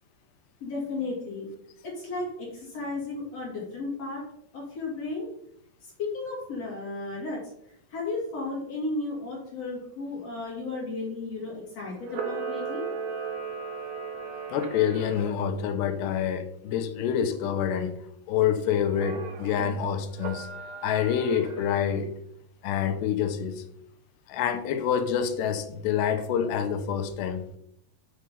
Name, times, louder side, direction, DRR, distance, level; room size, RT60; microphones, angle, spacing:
voice 1, 0.6-1.5 1.8-4.2 4.5-5.3 5.8-7.4 7.9-12.8, left 3 dB, 45° left, 3.1 m, -34 dB
Camera, 12.0-15.3 18.9-19.6 20.2-22.0, right 5 dB, 75° right, 1.5 m, -36 dB
voice 2, 14.5-17.9 18.3-20.5 20.8-22.1 22.6-23.6 24.3-27.4, left 8 dB, 90° left, 3.0 m, -27 dB
8.1 x 6.3 x 5.5 m
omnidirectional pair, 4.7 m